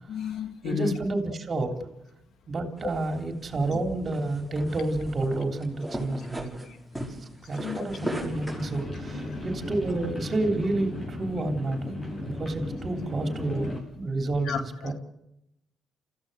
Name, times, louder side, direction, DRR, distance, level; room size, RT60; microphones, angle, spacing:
voice 1, 0.1-1.0 3.7-3.8 6.6-6.8 7.5-8.1 9.3-9.4 14.4-14.9, left 7 dB, 70° left, 7 dB, 2.2 m, -33 dB
voice 2, 0.6-1.7 2.5-6.5 7.5-14.9, right 2 dB, 40° right, 4 dB, 3.5 m, -30 dB
sound 1, 2.8-8.8, right 1 dB, ahead, 5.2 m, -38 dB
sound 2, 8.0-13.8, left 1 dB, 30° left, 7.9 m, -36 dB
30.0 x 15.0 x 6.9 m, 0.86 s
cardioid pair, 90°, 0 cm